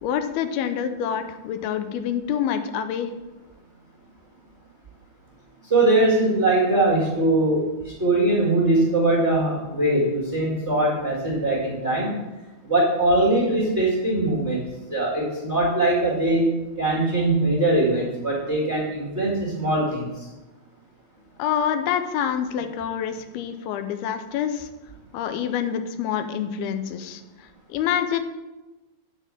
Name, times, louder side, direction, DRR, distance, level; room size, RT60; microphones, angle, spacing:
voice 1, 0.0-3.1 21.4-24.7 25.1-27.2 27.7-28.2, left 8 dB, 90° left, 8 dB, 2.6 m, -26 dB
voice 2, 5.7-12.1 12.6-14.6 14.9-16.5 16.8-20.1, right 2 dB, 40° right, -5 dB, 0.9 m, -21 dB
9.1 x 4.2 x 7.4 m, 1.1 s
omnidirectional pair, 4.4 m